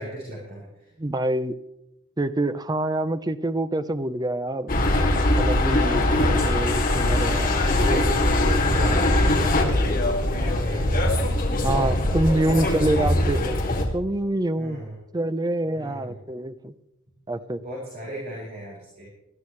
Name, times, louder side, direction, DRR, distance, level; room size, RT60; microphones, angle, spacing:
voice 1, 0.0-0.9 5.6-6.3 7.6-13.2 14.6-15.0 15.8-16.2 17.6-19.1, equal, 40° right, -4 dB, 4.4 m, -36 dB
voice 2, 1.0-1.5 2.2-4.7 5.4-7.6 7.9-8.0 11.6-13.6 13.9-14.8 15.1-16.7 17.3-17.6, right 1 dB, 20° right, 12 dB, 0.6 m, -26 dB
sound 1, 4.7-13.9, left 1 dB, 40° left, 2.3 m, -22 dB
20.5 x 13.5 x 3.2 m, 0.84 s
head